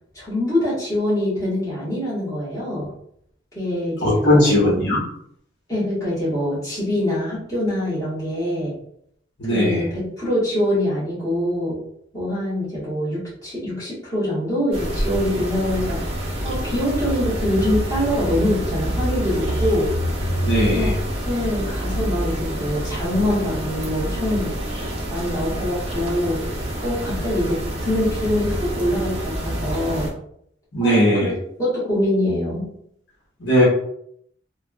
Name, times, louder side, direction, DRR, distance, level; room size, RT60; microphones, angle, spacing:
voice 1, 0.1-2.9 3.5-4.5 5.7-8.7 9.5-11.8 12.1-16.0 16.4-19.9 20.7-20.9 21.2-24.5 25.1-26.4 26.8-30.1 30.8-31.3 31.6-32.7, left 1 dB, 15° left, -10 dB, 1.2 m, -24 dB
voice 2, 4.0-5.0 9.4-9.9 20.4-20.9 30.7-31.3 33.4-33.6, equal, 60° left, -6 dB, 1.0 m, -18 dB
sound 1, 14.7-30.1, equal, 30° right, 0.5 m, -27 dB
3.2 x 2.1 x 2.3 m, 0.70 s
head